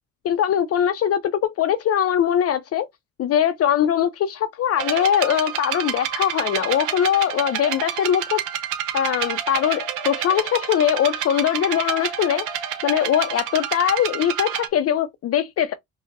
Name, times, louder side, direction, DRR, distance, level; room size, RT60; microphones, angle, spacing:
voice 1, 0.2-2.9 3.2-8.4 8.9-12.5 12.8-15.7, left 9 dB, 55° left, 0.4 m, -21 dB
sound 1, 4.8-14.7, right 9 dB, 85° right, 0.7 m, -29 dB
5.1 x 2.0 x 2.5 m
cardioid pair, 90°, 30 cm